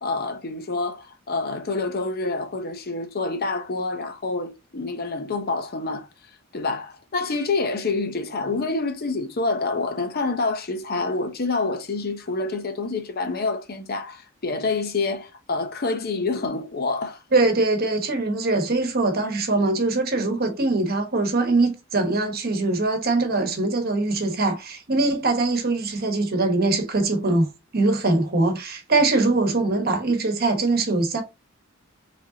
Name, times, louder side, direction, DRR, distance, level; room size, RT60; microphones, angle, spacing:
voice 1, 0.0-6.1 6.5-17.2, left 3 dB, 45° left, 0.8 m, -27 dB
voice 2, 17.3-31.2, right 2 dB, 45° right, 1.1 m, -22 dB
5.2 x 3.4 x 2.7 m
head